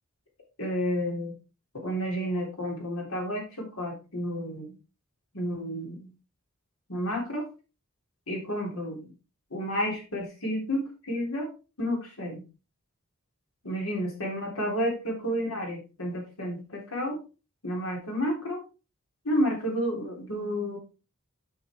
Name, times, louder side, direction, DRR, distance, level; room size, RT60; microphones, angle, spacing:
voice 1, 0.6-1.3 1.7-4.7 5.3-6.1 6.9-7.5 8.3-9.1 9.5-11.5 11.8-12.4 13.7-17.2 17.6-18.6 19.3-20.8, equal, 85° left, 0 dB, 3.5 m, -31 dB
9.1 x 6.1 x 3.5 m, 0.31 s
head